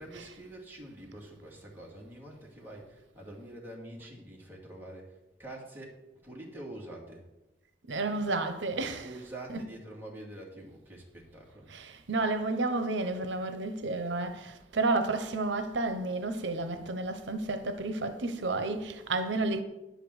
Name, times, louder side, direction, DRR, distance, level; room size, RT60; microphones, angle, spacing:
voice 1, 0.0-7.3 9.0-11.7, right 1 dB, 10° right, 2.4 m, -46 dB
voice 2, 7.9-9.2 9.5-9.6 11.7-19.6, right 2 dB, 85° right, 0.9 m, -31 dB
10.5 x 5.1 x 7.9 m
head